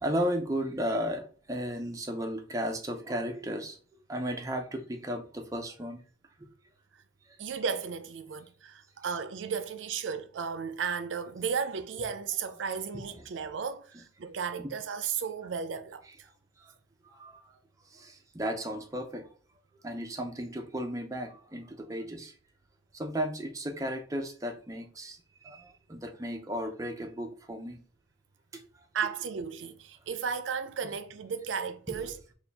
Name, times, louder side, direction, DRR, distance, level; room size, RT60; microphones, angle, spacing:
voice 1, 0.0-3.8 4.1-6.0 13.1-13.2 14.6-14.7 16.6-16.7 17.0-17.4 17.9-19.3 19.8-22.3 22.9-25.2 25.4-27.8 28.5-28.6 30.8-30.9 31.9-32.1, equal, 15° right, 0.4 m, -34 dB
voice 2, 7.4-16.1 28.9-32.2, right 6 dB, 75° right, 0.4 m, -34 dB
4.2 x 2.3 x 3.4 m
head